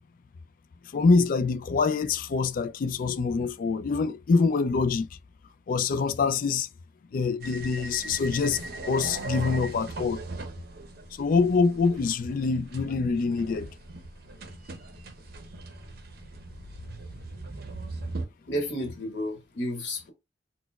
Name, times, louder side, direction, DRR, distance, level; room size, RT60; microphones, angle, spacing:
voice 1, 0.9-5.1 5.7-6.7 7.1-10.2 11.2-13.7, left 4 dB, 50° left, 0.3 m, -25 dB
sound 1, 7.4-18.2, right 2 dB, 60° right, 0.6 m, -39 dB
voice 2, 18.5-20.1, equal, 75° left, 1.0 m, -31 dB
4.1 x 2.1 x 2.2 m
head